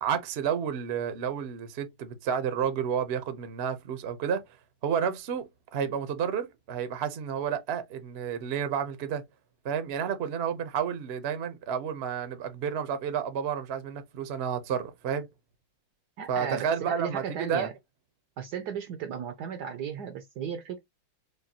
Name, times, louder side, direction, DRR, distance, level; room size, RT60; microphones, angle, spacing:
voice 1, 0.0-4.4 4.8-9.2 9.6-15.3 16.3-17.7, right 7 dB, 55° right, 0.7 m, -31 dB
voice 2, 16.2-17.7 18.4-20.8, right 7 dB, 75° right, 1.0 m, -35 dB
5.0 x 2.3 x 2.8 m
omnidirectional pair, 2.2 m